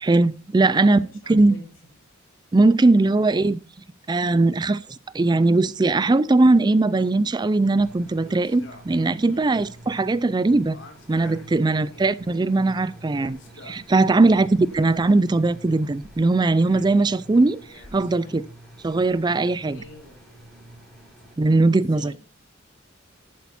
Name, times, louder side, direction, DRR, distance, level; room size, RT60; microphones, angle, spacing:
voice 1, 0.0-1.0 1.3-1.6 2.5-3.6 4.1-4.8 5.1-10.8 11.1-13.4 13.6-17.6 17.9-18.4 18.8-19.8 21.4-22.1, right 2 dB, 20° right, 0.4 m, -19 dB
voice 2, 0.7-1.9 9.3-9.5 11.6-12.1 14.1-14.5 18.2-18.4 19.7-20.2 21.8-22.2, left 2 dB, 80° left, 5.7 m, -47 dB
sound 1, 6.7-7.3 8.2-9.2 9.4-9.5 10.6-12.2 13.0-13.9 14.5-15.6 16.6-17.2 17.7-18.4, left 2 dB, 65° left, 2.2 m, -49 dB
sound 2, 7.8-21.3, right 1 dB, 5° left, 4.3 m, -47 dB
11.0 x 8.7 x 4.2 m
head